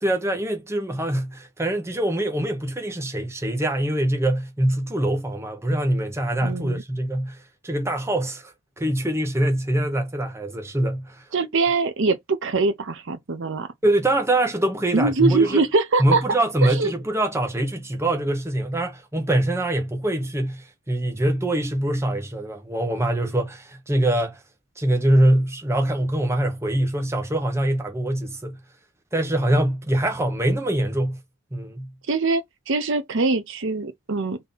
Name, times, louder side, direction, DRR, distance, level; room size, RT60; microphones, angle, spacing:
voice 1, 0.0-11.2 13.8-15.6 16.0-24.4 24.8-28.6 29.1-31.2 31.5-31.9, right 1 dB, 10° right, 0.8 m, -24 dB
voice 2, 6.4-6.8 11.3-13.7 14.9-16.2 16.6-16.9 32.1-34.4, right 3 dB, 55° right, 0.7 m, -23 dB
3.7 x 2.8 x 3.9 m
head